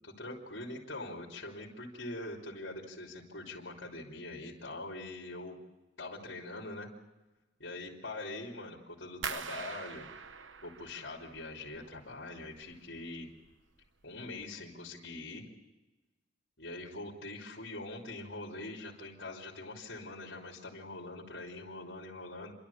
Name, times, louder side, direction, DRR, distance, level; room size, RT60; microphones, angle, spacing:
voice 1, 0.2-5.6 6.0-6.9 7.6-10.1 10.6-13.3 14.0-15.4 16.6-22.5, left 2 dB, 70° left, -2 dB, 3.1 m, -43 dB
sound 1, 9.2-12.1 12.4-13.1 13.4-13.9 14.3-14.4, right 6 dB, 85° right, 1.0 m, -43 dB
28.5 x 11.5 x 8.5 m, 1.1 s
head